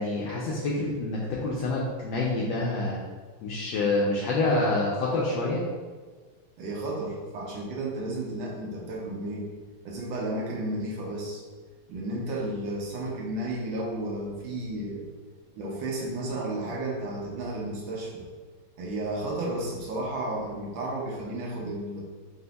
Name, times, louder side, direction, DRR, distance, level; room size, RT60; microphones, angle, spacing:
voice 1, 0.0-3.0 3.4-5.6, left 2 dB, 80° left, -4 dB, 1.3 m, -27 dB
voice 2, 6.6-9.5 9.8-11.4 11.9-15.1 15.6-18.2 18.8-22.0, right 1 dB, 90° right, -3 dB, 1.7 m, -32 dB
4.5 x 2.1 x 3.9 m, 1.4 s
omnidirectional pair, 2.1 m